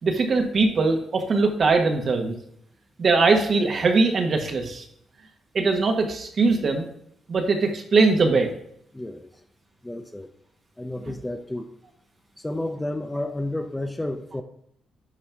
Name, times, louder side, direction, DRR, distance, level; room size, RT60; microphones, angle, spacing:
voice 1, 0.0-2.3 3.0-4.8 5.5-6.9 7.3-8.5, right 3 dB, 50° right, 3 dB, 1.6 m, -21 dB
voice 2, 8.9-9.3 9.8-10.3 10.8-11.7 12.4-14.4, left 1 dB, 10° left, 7 dB, 0.7 m, -31 dB
11.5 x 4.4 x 3.6 m, 0.73 s
cardioid pair, 80°, 0 cm